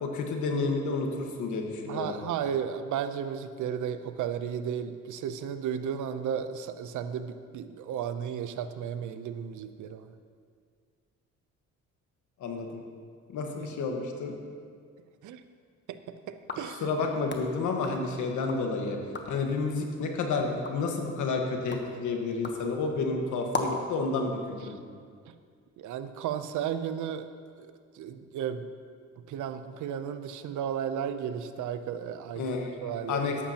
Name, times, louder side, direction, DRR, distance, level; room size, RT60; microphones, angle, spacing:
voice 1, 0.0-2.1 12.4-12.8 13.3-14.3 16.8-19.0 19.3-24.8 32.4-33.4, left 4 dB, 80° left, 2 dB, 1.5 m, -30 dB
voice 2, 1.9-10.1 15.2-15.4 15.9-16.9 25.3-25.4 25.8-27.3 27.6-28.7 29.3-32.5 32.8-33.4, right 8 dB, 75° right, 11 dB, 0.7 m, -34 dB
sound 1, 16.4-18.7 19.0-19.5 20.0-24.0, left 2 dB, 35° left, 1.2 m, -39 dB
13.5 x 11.5 x 2.9 m, 2.1 s
cardioid pair, 90°, 30 cm